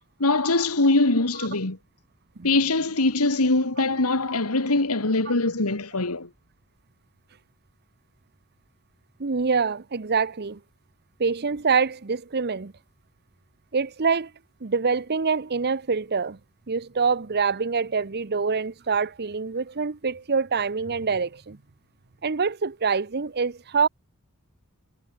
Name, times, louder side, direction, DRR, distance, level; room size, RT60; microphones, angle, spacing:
voice 1, 0.2-1.8 2.4-6.3, left 2 dB, 85° left, 2.3 m, -22 dB
voice 2, 9.2-10.6 11.2-12.7 13.7-14.3 14.6-16.4 16.7-21.6 22.2-23.9, right 5 dB, 50° right, 0.9 m, -25 dB
head